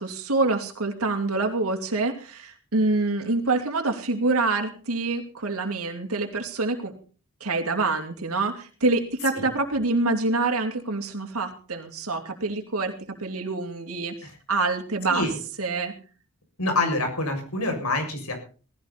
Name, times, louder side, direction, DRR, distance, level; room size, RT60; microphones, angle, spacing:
voice 1, 0.0-6.9 7.4-12.9 13.2-14.1 14.5-15.3 15.6-15.9, right 3 dB, 80° right, 2 dB, 3.0 m, -26 dB
voice 2, 16.6-18.3, left 2 dB, 85° left, 4 dB, 7.0 m, -26 dB
18.5 x 16.5 x 4.2 m, 0.39 s
head